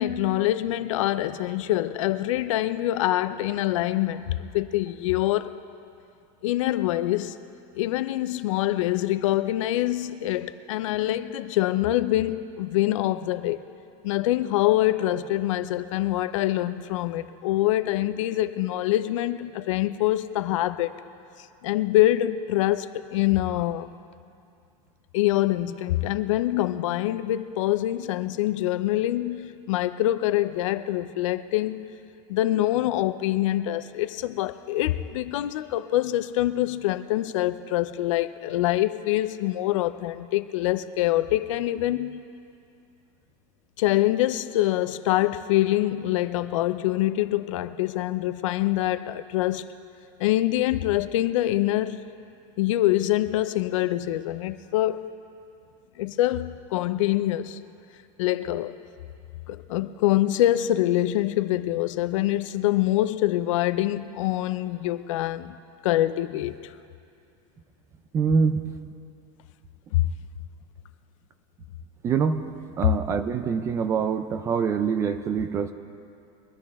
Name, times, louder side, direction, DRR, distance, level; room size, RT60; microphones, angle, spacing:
voice 1, 0.0-5.5 6.4-7.4 7.7-13.6 14.0-20.9 21.4-23.9 25.1-31.8 32.3-42.3 43.8-49.7 50.2-52.0 52.6-55.1 56.0-57.6 58.2-58.8 59.5-65.6 65.8-66.7 69.9-70.1, left 15 dB, 70° left, 0.6 m, -25 dB
voice 2, 68.1-68.6 72.0-72.4 72.8-75.7, right 6 dB, 15° right, 0.4 m, -24 dB
23.0 x 13.0 x 3.5 m
supercardioid pair, 175°, 17 cm